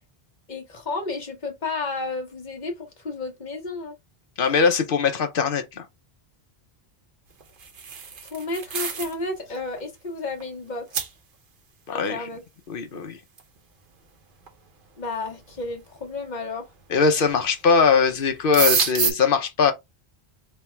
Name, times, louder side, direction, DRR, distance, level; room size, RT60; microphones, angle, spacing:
voice 1, 0.5-3.9 8.3-10.9 11.9-12.4 15.0-16.6, left 3 dB, 45° left, 1.2 m, -32 dB
voice 2, 4.4-5.9 11.9-12.2 12.7-13.2 16.9-19.7, left 5 dB, 60° left, 0.9 m, -21 dB
sound 1, 7.4-9.2 9.5-9.8 10.4-10.5 10.9-11.1 13.4-13.5 14.5-14.6 15.3-15.7 17.0-17.4 17.7-17.9 18.2-19.1, right 6 dB, 60° right, 0.9 m, -26 dB
3.4 x 2.3 x 4.3 m
omnidirectional pair, 1.0 m